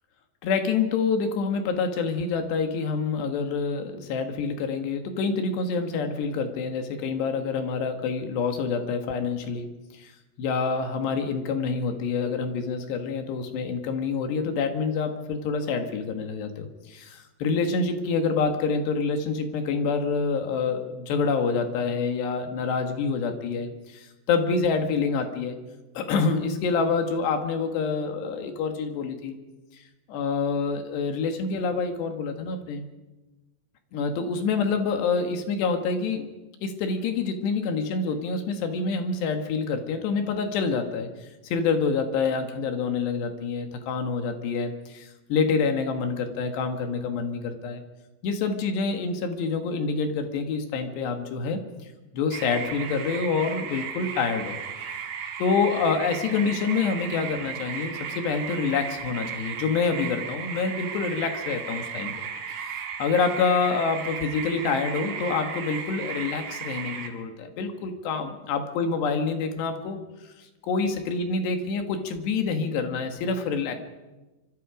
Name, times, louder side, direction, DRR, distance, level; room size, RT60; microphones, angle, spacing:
voice 1, 0.4-9.7 9.9-10.1 10.4-25.6 26.0-29.4 29.7-29.8 30.1-32.9 33.9-36.3 36.6-47.8 48.2-51.6 52.1-54.9 55.4-62.3 62.5-62.7 63.0-73.8, left 5 dB, 70° left, 6 dB, 3.7 m, -27 dB
sound 1, 52.3-67.1, right 7 dB, 60° right, 3.8 m, -35 dB
25.5 x 24.5 x 5.0 m, 1.1 s
omnidirectional pair, 5.2 m